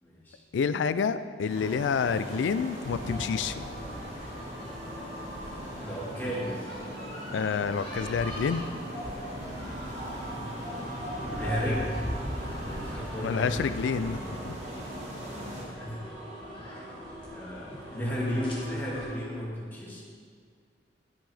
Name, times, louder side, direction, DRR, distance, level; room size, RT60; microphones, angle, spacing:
voice 1, 0.0-0.4 5.8-6.5 10.3-10.5 11.3-11.9 12.6-13.5 15.6-16.1 16.8-16.9 17.3-20.0, equal, 10° left, -6 dB, 1.7 m, -34 dB
voice 2, 0.5-3.7 7.3-8.6 13.2-14.6, left 6 dB, 90° left, 13 dB, 0.3 m, -28 dB
sound 1, 1.5-15.6, equal, 40° right, 1.9 m, -40 dB
sound 2, 1.6-19.1, equal, 30° left, 1.7 m, -41 dB
sound 3, 9.4-13.4, equal, 65° right, 2.1 m, -46 dB
10.5 x 5.5 x 3.4 m, 2.1 s
head